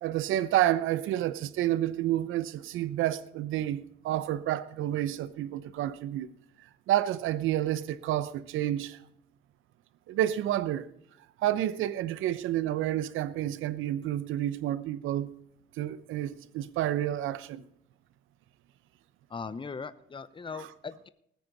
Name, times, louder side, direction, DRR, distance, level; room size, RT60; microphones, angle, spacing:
voice 1, 0.0-6.3 6.9-9.0 10.1-10.9 11.4-15.3 15.8-17.6 20.5-20.7, right 13 dB, 90° right, 0.9 m, -29 dB
voice 2, 19.3-21.1, left 5 dB, 25° left, 0.8 m, -39 dB
19.5 x 9.5 x 4.1 m
cardioid pair, 90°, 20 cm